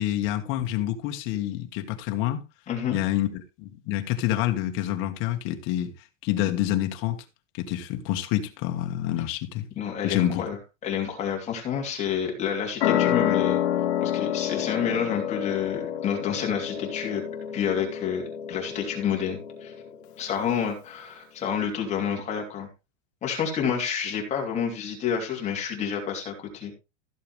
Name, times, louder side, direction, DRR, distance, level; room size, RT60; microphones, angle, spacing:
voice 1, 0.0-2.4 2.9-5.9 6.2-7.2 7.5-9.7 10.0-10.5, left 13 dB, 35° left, 1.6 m, -27 dB
voice 2, 2.7-3.0 9.7-13.6 14.0-17.2 17.5-19.7 20.2-22.7 23.2-26.7, left 7 dB, 20° left, 3.0 m, -29 dB
sound 1, 12.8-20.0, left 10 dB, 55° left, 2.5 m, -28 dB
15.5 x 6.9 x 3.4 m
supercardioid pair, 175°, 38 cm